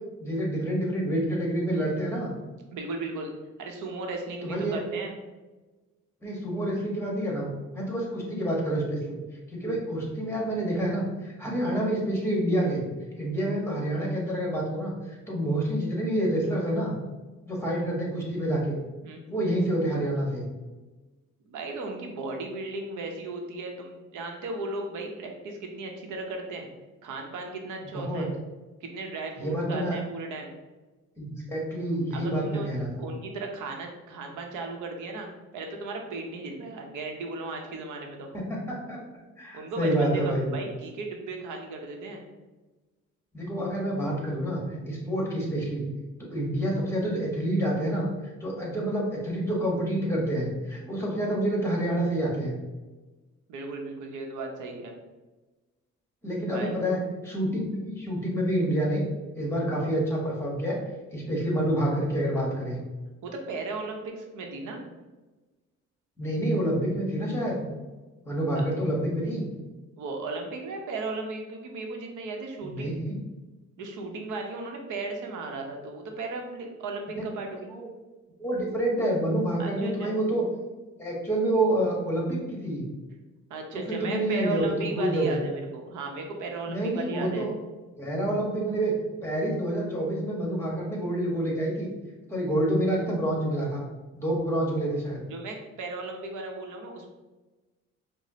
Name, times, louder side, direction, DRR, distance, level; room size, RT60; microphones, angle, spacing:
voice 1, 0.2-2.3 4.4-4.8 6.2-7.5 7.7-9.2 9.5-12.8 13.2-17.0 17.5-18.8 19.3-20.5 27.8-28.2 29.4-30.0 31.2-33.1 38.3-39.0 39.4-40.5 43.3-45.9 46.3-48.1 48.4-52.6 56.2-59.0 59.4-60.8 61.1-62.8 66.2-67.6 68.2-69.5 72.6-73.2 77.1-77.2 77.7-77.9 78.4-80.4 81.0-82.9 83.7-85.4 86.7-87.5 88.0-88.9 89.2-91.9 92.3-93.8 94.1-95.2, right 1 dB, 10° left, -3 dB, 1.2 m, -28 dB
voice 2, 2.7-3.3 3.6-5.1 13.3-13.5 19.0-19.2 21.5-26.7 27.0-28.3 28.8-30.6 32.1-32.7 33.0-38.3 39.5-42.2 53.5-54.9 56.4-56.8 63.2-64.9 68.5-68.6 70.0-72.9 73.8-77.7 79.6-80.2 83.5-87.5 95.3-97.1, right 3 dB, 80° right, 2 dB, 0.7 m, -36 dB
4.9 x 2.0 x 2.8 m, 1.2 s
cardioid pair, 90°, 30 cm